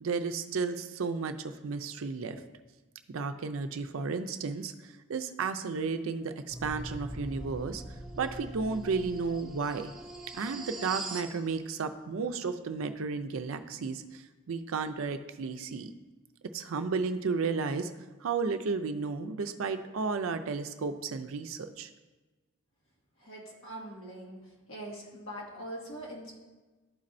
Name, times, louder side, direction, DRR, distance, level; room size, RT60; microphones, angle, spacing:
voice 1, 0.0-2.4 3.1-7.8 8.2-9.9 10.3-15.9 16.5-17.9 18.2-21.9, right 4 dB, 70° right, 8 dB, 0.4 m, -33 dB
sound 1, 6.5-11.3, right 1 dB, 5° right, 0.6 m, -42 dB
voice 2, 23.2-24.4 24.7-26.4, right 1 dB, 80° left, -3 dB, 1.6 m, -42 dB
12.0 x 4.2 x 2.6 m, 1.2 s
head